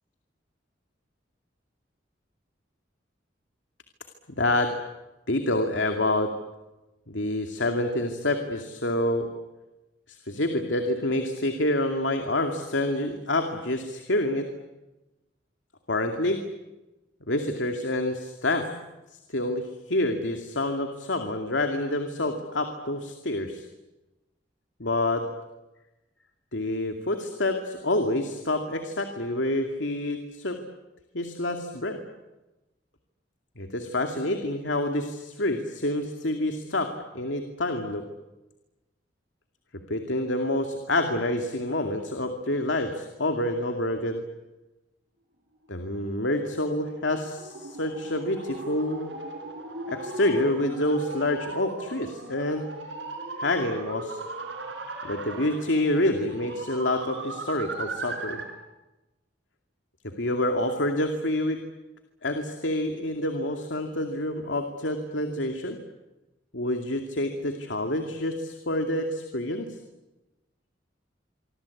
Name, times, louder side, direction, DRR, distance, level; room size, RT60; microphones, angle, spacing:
voice 1, 4.4-4.7 5.3-6.3 7.1-9.3 10.1-14.5 15.9-16.4 17.3-18.7 19.3-23.7 24.8-25.2 26.5-30.6 31.1-32.0 33.6-38.0 39.9-44.2 45.7-49.1 49.9-52.7 53.4-54.2 55.0-58.4 60.0-61.6 62.2-65.8 66.5-69.8, left 1 dB, 85° left, 5 dB, 2.5 m, -27 dB
sound 1, 45.9-58.6, right 2 dB, 75° right, 5.0 m, -38 dB
26.0 x 25.5 x 8.5 m, 1.1 s
head